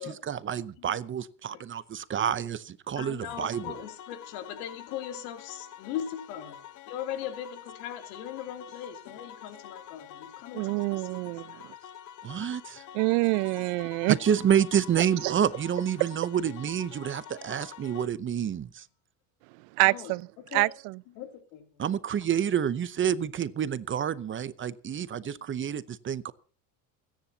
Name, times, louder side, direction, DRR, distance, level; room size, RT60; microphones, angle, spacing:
voice 1, 0.2-3.7 12.2-12.8 14.1-18.8 21.8-26.3, right 9 dB, 25° right, 0.8 m, -28 dB
voice 2, 2.9-11.1 11.5-11.7 13.6-13.7 14.4-14.5 19.8-20.1 20.5-20.7 21.1-21.8 25.1-25.8, left 10 dB, 90° left, 3.1 m, -40 dB
sound 1, 3.3-18.1, left 10 dB, 45° left, 0.8 m, -47 dB
voice 3, 10.5-11.6 12.9-14.2 15.2-15.3 16.0-16.1 19.8-20.7, right 26 dB, 80° right, 0.6 m, -26 dB
28.5 x 10.0 x 2.9 m
cardioid pair, 135°, 44 cm